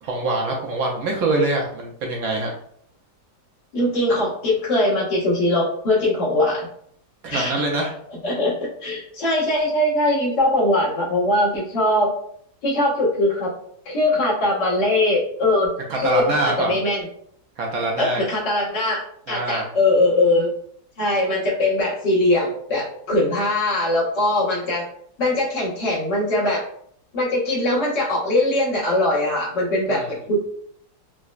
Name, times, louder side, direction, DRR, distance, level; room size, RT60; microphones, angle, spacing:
voice 1, 0.0-2.5 7.2-7.9 15.9-16.8 17.6-18.2 19.3-19.6 29.9-30.1, right 2 dB, 65° right, -1 dB, 1.0 m, -24 dB
voice 2, 3.7-6.7 7.3-7.5 8.2-12.1 12.6-13.5 13.9-15.7 16.0-16.2 16.6-17.1 18.0-19.0 19.3-20.5 21.0-24.9 25.2-26.6 27.1-30.4, left 1 dB, 85° left, -7 dB, 2.0 m, -21 dB
4.7 x 2.1 x 2.3 m, 0.65 s
omnidirectional pair, 1.9 m